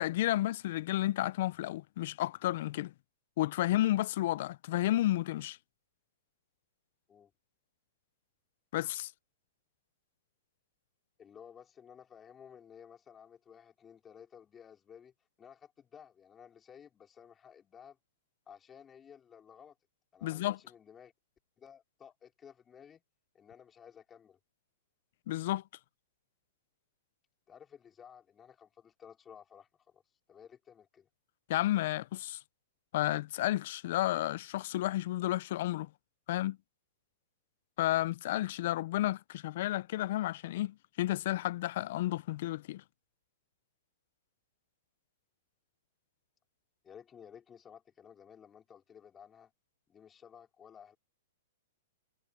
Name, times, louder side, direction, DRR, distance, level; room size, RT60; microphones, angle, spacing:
voice 1, 0.0-2.9 3.4-5.6 8.7-9.1 20.2-20.6 25.3-25.6 31.5-32.4 32.9-35.9 36.3-36.6 37.8-42.8, left 15 dB, 60° left, 0.6 m, -31 dB
voice 2, 11.2-15.1 15.4-18.0 18.5-19.7 20.1-21.1 21.6-23.0 23.3-24.4 27.5-30.0 30.3-31.1 46.8-49.5 49.9-51.0, left 8 dB, 20° left, 4.2 m, -55 dB
hypercardioid pair, 125°, 0 cm